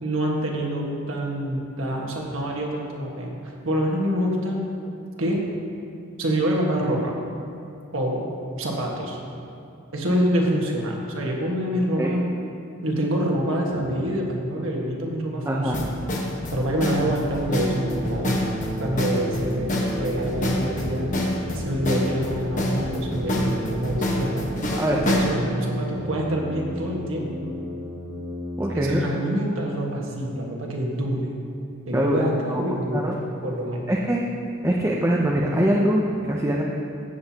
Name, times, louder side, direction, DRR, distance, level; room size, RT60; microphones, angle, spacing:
voice 1, 0.0-4.6 5.2-5.4 6.2-7.1 7.9-8.3 8.6-9.2 9.9-12.2 12.8-16.0 16.5-18.4 18.8-21.1 21.5-24.5 24.9-27.3 28.7-31.3 31.9-33.1 33.4-33.9, equal, 65° right, -1 dB, 1.5 m, -26 dB
voice 2, 15.5-15.8 24.8-25.0 28.6-29.0 31.9-32.2 32.5-32.6 32.9-33.2 33.9-34.2 34.6-36.6, right 1 dB, 15° right, -3 dB, 0.6 m, -23 dB
sound 1, 15.7-25.3, left 1 dB, 35° left, 1.2 m, -27 dB
sound 2, 17.5-28.8, equal, 30° right, 1.6 m, -33 dB
15.5 x 7.8 x 2.9 m, 2.7 s
head